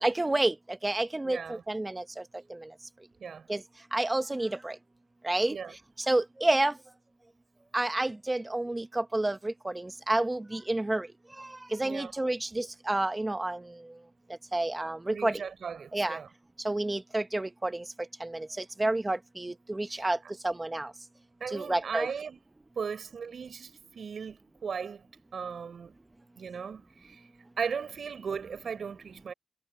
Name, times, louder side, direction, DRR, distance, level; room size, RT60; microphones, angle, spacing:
voice 1, 0.0-0.5 0.8-2.0 3.5-3.6 3.9-4.7 5.2-5.6 6.1-6.7 7.7-11.1 11.4-13.6 14.5-15.4 15.9-16.2 16.6-17.8 18.2-18.5 18.8-20.2 20.4-20.9 21.5-22.1, right 2 dB, 30° right, 1.4 m, -29 dB
voice 2, 1.2-1.6 3.2-3.5 5.5-5.8 11.8-12.1 15.1-16.3 19.9-20.3 21.4-22.4 22.8-25.0 25.3-25.9 26.4-27.2 27.6-29.3, right 6 dB, 85° right, 7.1 m, -37 dB
cardioid pair, 45°, 0 cm